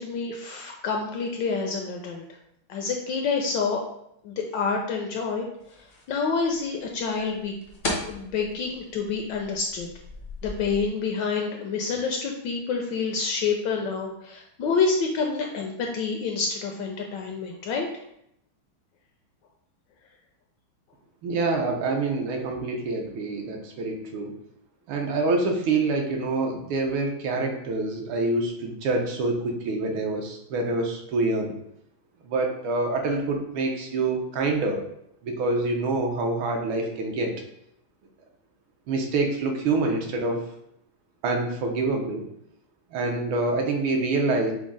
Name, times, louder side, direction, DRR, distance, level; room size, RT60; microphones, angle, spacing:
voice 1, 0.0-2.2 2.7-3.8 4.2-5.5 6.1-7.5 8.1-9.9 10.4-17.9, left 5 dB, 75° left, 1 dB, 1.1 m, -28 dB
sound 1, 5.6-10.9, left 2 dB, 55° left, 0.5 m, -37 dB
voice 2, 21.2-24.3 24.9-31.5 32.2-34.8 35.2-37.4 38.9-40.5 41.2-42.3 42.9-44.5, right 3 dB, 75° right, 2 dB, 1.5 m, -26 dB
6.0 x 2.0 x 3.8 m, 0.76 s
omnidirectional pair, 2.3 m